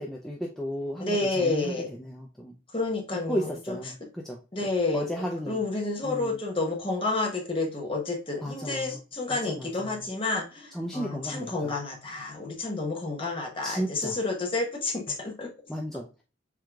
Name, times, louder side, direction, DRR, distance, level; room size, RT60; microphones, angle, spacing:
voice 1, 0.0-2.6 3.3-4.7 4.9-5.6 6.0-6.4 8.4-9.0 9.3-10.0 10.7-11.7 13.6-14.2 15.7-16.2, equal, ahead, -2 dB, 0.4 m, -34 dB
voice 2, 1.0-1.9 2.7-3.8 4.5-5.1 5.5-15.5, left 3 dB, 25° left, 1 dB, 0.9 m, -30 dB
4.6 x 3.6 x 2.3 m, 0.33 s
head